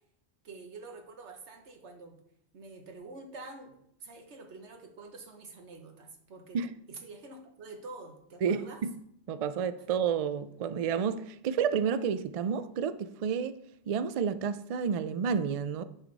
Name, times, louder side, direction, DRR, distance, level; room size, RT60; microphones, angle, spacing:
voice 1, 0.4-2.2 2.5-6.6 6.9-8.8, right 3 dB, 85° right, 1.4 m, -47 dB
voice 2, 8.4-8.9 9.3-13.6 13.9-15.8, right 7 dB, 70° right, 0.3 m, -30 dB
9.9 x 5.0 x 4.0 m
omnidirectional pair, 1.1 m